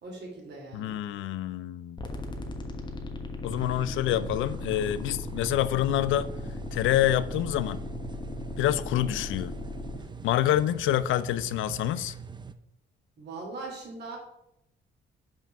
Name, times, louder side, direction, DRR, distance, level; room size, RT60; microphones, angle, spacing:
voice 1, 0.0-1.0 4.1-4.2 13.2-14.2, right 3 dB, 60° right, 2.9 m, -40 dB
voice 2, 0.7-2.1 3.4-6.3 6.7-7.8 8.6-9.5 10.2-12.1, left 12 dB, 80° left, 0.5 m, -27 dB
sound 1, 2.0-10.0, left 2 dB, 25° left, 1.2 m, -37 dB
sound 2, 3.5-12.5, right 6 dB, 20° right, 0.5 m, -42 dB
5.7 x 4.9 x 5.9 m
cardioid pair, 90°, 20 cm